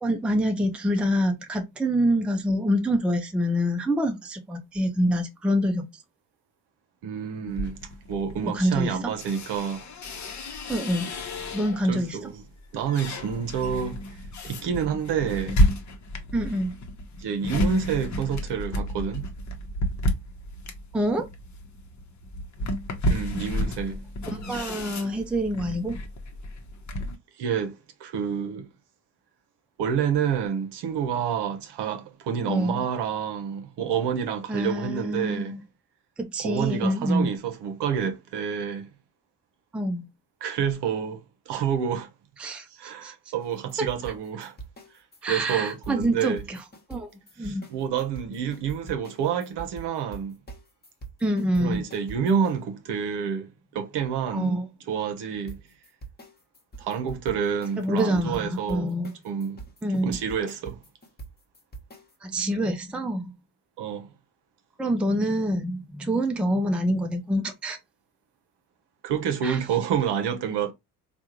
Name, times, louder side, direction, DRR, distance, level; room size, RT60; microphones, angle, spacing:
voice 1, 0.0-6.0 8.4-9.1 10.7-11.1 11.5-12.3 16.3-16.7 20.9-21.3 24.3-26.0 32.5-32.8 34.5-35.6 36.2-37.3 39.7-40.1 42.4-43.1 43.8-43.9 45.2-46.6 46.9-47.1 47.4-47.7 51.2-51.8 54.3-54.7 57.8-59.1 59.8-60.1 62.2-63.3 64.8-67.8 69.4-69.6, equal, ahead, 0.5 m, -26 dB
voice 2, 7.0-7.8 8.1-9.9 11.9-12.4 12.7-14.0 14.4-15.6 17.2-19.2 23.1-24.0 27.4-28.7 29.8-35.5 36.4-38.9 40.4-42.1 42.7-44.6 45.2-46.4 47.4-50.4 51.6-55.6 56.8-59.0 59.2-59.6 59.9-60.8 63.8-64.1 69.0-70.7, right 7 dB, 55° right, 0.9 m, -28 dB
sound 1, 7.5-12.0 12.4-27.2, equal, 35° left, 1.0 m, -31 dB
sound 2, 43.4-52.6 55.5-62.1, right 4 dB, 20° left, 1.3 m, -44 dB
3.5 x 2.4 x 2.9 m
hypercardioid pair, 60°, 49 cm